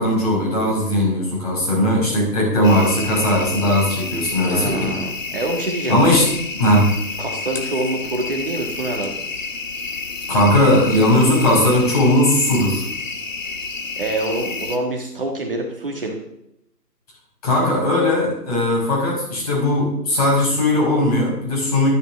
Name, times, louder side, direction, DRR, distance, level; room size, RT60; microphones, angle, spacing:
voice 1, 0.0-4.9 5.9-6.3 6.5-6.9 10.3-12.9 17.4-21.9, left 1 dB, 20° left, -2 dB, 5.5 m, -18 dB
sound 1, 2.6-14.8, left 3 dB, 50° left, 1.9 m, -30 dB
voice 2, 4.5-6.0 7.2-9.3 14.0-16.2, right 2 dB, 35° right, 1 dB, 1.7 m, -26 dB
12.5 x 8.7 x 7.4 m, 0.79 s
figure-of-eight pair, 165°, 50 cm